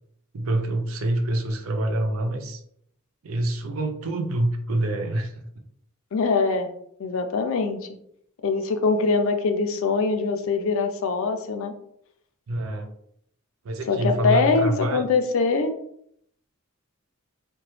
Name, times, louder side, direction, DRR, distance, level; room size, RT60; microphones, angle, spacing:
voice 1, 0.3-2.6 3.2-5.4 12.5-12.9 13.6-15.0, right 1 dB, 70° right, 5 dB, 0.5 m, -26 dB
voice 2, 6.1-6.7 7.0-7.8 8.4-11.7 13.9-15.7, left 4 dB, 65° left, 8 dB, 0.4 m, -23 dB
2.9 x 2.2 x 3.1 m, 0.69 s
head